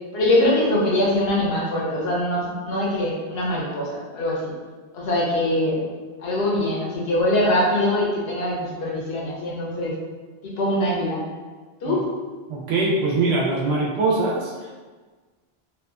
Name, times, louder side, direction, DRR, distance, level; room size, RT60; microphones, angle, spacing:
voice 1, 0.1-4.5 4.9-5.8 6.2-9.9 10.4-11.3 11.8-12.1, left 1 dB, 75° left, -3 dB, 0.9 m, -23 dB
voice 2, 12.5-14.7, right 3 dB, 85° right, -3 dB, 0.8 m, -22 dB
2.7 x 2.2 x 2.3 m, 1.4 s
omnidirectional pair, 1.0 m